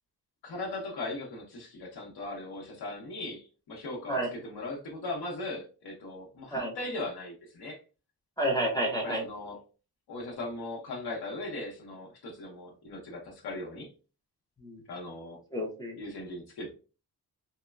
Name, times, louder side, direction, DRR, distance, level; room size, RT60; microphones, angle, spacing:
voice 1, 0.4-7.8 9.0-9.6 10.1-13.9 14.9-15.4 16.0-16.7, left 2 dB, 80° left, -1 dB, 0.9 m, -38 dB
voice 2, 8.4-9.2 14.6-14.8 15.5-16.0, right 1 dB, 10° left, -2 dB, 0.3 m, -30 dB
3.0 x 2.2 x 2.2 m, 0.34 s
wide cardioid pair, 165°, 38 cm